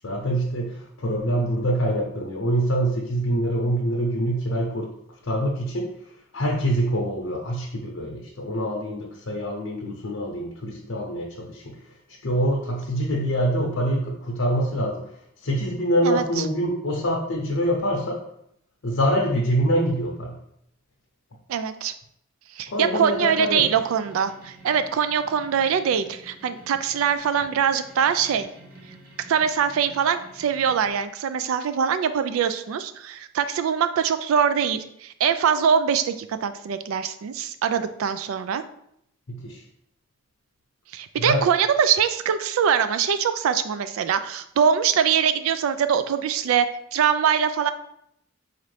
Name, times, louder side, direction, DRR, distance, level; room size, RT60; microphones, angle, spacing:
voice 1, 0.0-4.9 5.2-5.9 6.3-11.8 12.2-15.0 15.4-18.2 18.8-20.3 22.7-23.6 39.3-39.6 41.2-41.5, equal, 70° left, -2 dB, 0.7 m, -25 dB
voice 2, 21.5-21.9 22.6-28.5 29.3-38.6 40.9-46.7 46.9-47.7, right 7 dB, 90° right, 12 dB, 0.3 m, -23 dB
sound 1, 23.0-30.9, right 1 dB, 45° right, 0.7 m, -48 dB
4.2 x 2.5 x 3.2 m, 0.74 s
head